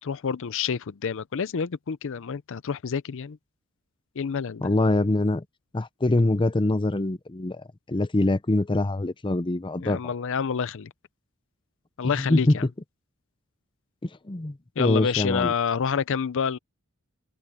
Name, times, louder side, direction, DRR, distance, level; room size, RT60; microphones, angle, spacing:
voice 1, 0.0-3.4 4.2-4.7 9.8-10.9 12.0-12.6 14.8-16.6, left 6 dB, 60° left, 0.5 m, -28 dB
voice 2, 4.6-5.4 5.7-10.0 12.0-12.6 14.0-15.5, left 2 dB, 20° left, 0.6 m, -24 dB
open air
head